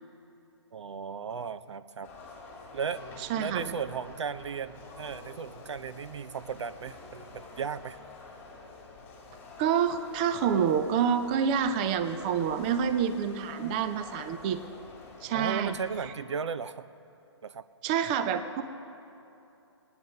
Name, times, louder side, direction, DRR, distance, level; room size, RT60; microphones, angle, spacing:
voice 1, 0.7-2.1 2.7-3.0 3.3-8.0 15.3-16.9 17.4-17.7, right 6 dB, 75° right, 14 dB, 0.6 m, -35 dB
sound 1, 2.0-16.1, left 3 dB, 10° left, 2.3 m, -48 dB
voice 2, 3.3-3.7 9.6-14.6 15.2-15.7 17.8-18.6, right 7 dB, 20° right, 10 dB, 0.4 m, -27 dB
20.5 x 9.6 x 5.4 m, 2.8 s
hypercardioid pair, 155°, 15 cm